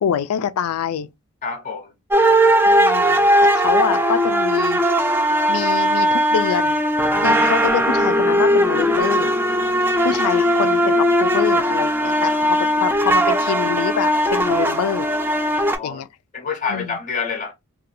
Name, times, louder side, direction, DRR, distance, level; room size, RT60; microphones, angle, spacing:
voice 1, 0.0-1.1 2.7-4.8 5.5-6.8 7.2-9.3 10.0-15.1 15.8-16.1 16.7-17.0, left 7 dB, 85° left, 0.3 m, -25 dB
voice 2, 1.4-1.9 15.5-16.0 16.3-17.5, left 5 dB, 35° left, 0.5 m, -28 dB
sound 1, 2.1-15.8, equal, 10° right, 0.3 m, -18 dB
2.5 x 2.3 x 2.7 m
head